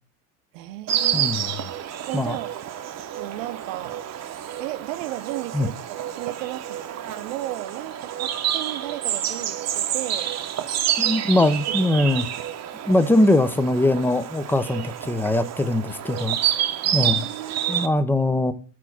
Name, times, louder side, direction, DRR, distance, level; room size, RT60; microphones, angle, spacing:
voice 1, 0.5-1.4 2.1-2.6 3.1-4.0 4.6-6.8 7.1-10.3 11.9-12.3 16.8-18.0, right 16 dB, 70° right, 0.6 m, -35 dB
Insect, 0.9-17.9, right 11 dB, 40° right, 0.8 m, -28 dB
voice 2, 1.1-1.7 2.1-2.4 5.5-5.7 11.0-12.3 12.9-16.5 16.9-17.2 17.7-18.5, left 1 dB, 5° left, 0.5 m, -21 dB
6.1 x 4.5 x 5.7 m
hypercardioid pair, 85°, 41 cm